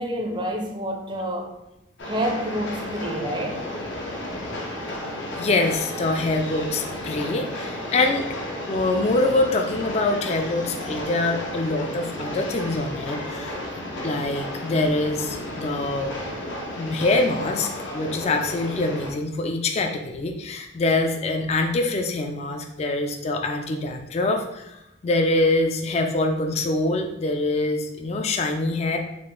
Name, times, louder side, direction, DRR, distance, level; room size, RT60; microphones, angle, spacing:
voice 1, 0.0-1.5 2.0-3.7, equal, 25° right, 2 dB, 0.5 m, -28 dB
Train, 2.0-19.1, left 1 dB, 75° left, 0.7 m, -33 dB
voice 2, 5.3-8.3 8.7-13.6 14.0-16.1 16.8-29.0, left 2 dB, 35° left, 4 dB, 0.3 m, -24 dB
3.7 x 2.4 x 3.7 m, 0.87 s
head